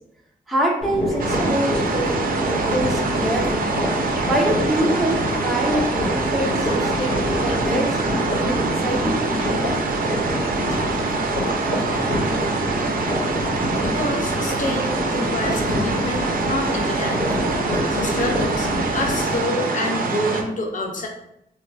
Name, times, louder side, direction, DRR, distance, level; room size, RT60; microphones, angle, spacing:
voice 1, 0.5-3.7 4.3-9.2, right 1 dB, ahead, -2 dB, 0.5 m, -25 dB
sound 1, 0.8-19.5, left 1 dB, 85° left, 1.3 m, -26 dB
sound 2, 1.2-20.4, right 3 dB, 60° right, 0.4 m, -25 dB
voice 2, 13.8-17.4 17.9-21.1, left 2 dB, 55° left, 1 dB, 0.6 m, -27 dB
2.9 x 2.4 x 2.2 m, 0.78 s
cardioid pair, 90°, 16 cm